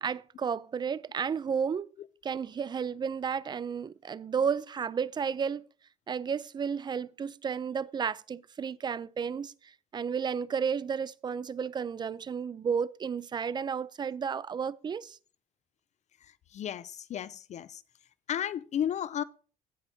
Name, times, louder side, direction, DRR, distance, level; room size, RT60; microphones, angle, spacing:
voice 1, 0.0-1.9 2.2-5.6 6.1-15.2, right 6 dB, 25° right, 0.4 m, -32 dB
voice 2, 16.5-17.8 18.3-19.2, left 9 dB, 45° left, 0.4 m, -33 dB
16.0 x 5.5 x 2.7 m
cardioid pair, 110°, 17 cm